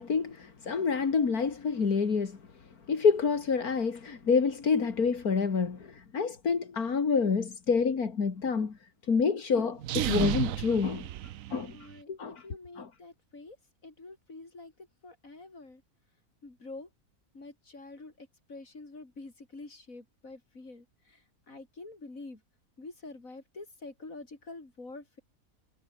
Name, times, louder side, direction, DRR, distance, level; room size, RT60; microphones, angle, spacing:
voice 1, 0.0-2.4 2.9-8.7 9.1-11.1 11.5-11.7 12.1-12.4 12.8-12.9, left 5 dB, 85° left, 2.7 m, -27 dB
sound 1, 9.8-11.9, right 13 dB, 70° right, 1.0 m, -32 dB
voice 2, 11.7-12.1 12.4-13.6 13.8-14.7 15.0-15.8 16.4-16.9 17.3-21.2 21.5-22.4 22.8-25.2, left 3 dB, 65° left, 4.9 m, -47 dB
omnidirectional pair, 1.5 m